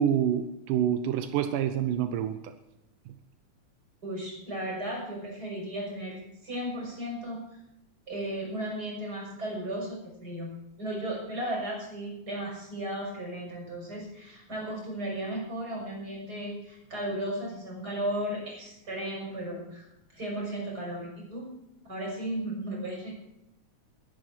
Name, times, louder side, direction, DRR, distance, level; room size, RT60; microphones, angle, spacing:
voice 1, 0.0-2.5 3.1-3.2, right 9 dB, 85° right, 8 dB, 2.5 m, -27 dB
voice 2, 4.0-7.4 8.1-19.9 20.1-21.5 21.9-23.2, right 1 dB, 30° right, -2 dB, 6.9 m, -35 dB
22.5 x 11.0 x 4.5 m, 0.85 s
omnidirectional pair, 3.6 m